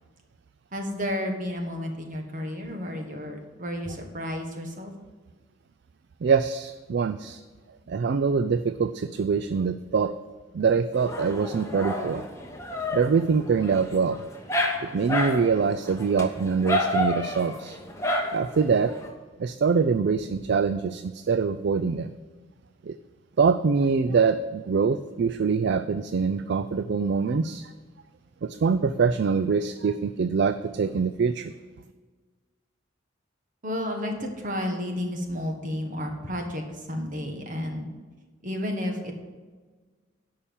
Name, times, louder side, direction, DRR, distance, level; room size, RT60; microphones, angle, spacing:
voice 1, 0.7-4.9 33.6-37.9 38.4-39.1, left 1 dB, 40° right, 3 dB, 1.6 m, -32 dB
voice 2, 6.2-7.4 7.9-10.1 10.5-12.2 12.9-14.2 14.9-17.8 18.3-18.9 19.4-22.1 22.8-22.9 23.4-27.7 28.4-31.5, right 5 dB, 55° right, 12 dB, 0.3 m, -24 dB
Dog, 10.9-19.1, left 1 dB, 15° left, 1.1 m, -30 dB
11.0 x 5.7 x 7.2 m, 1.4 s
head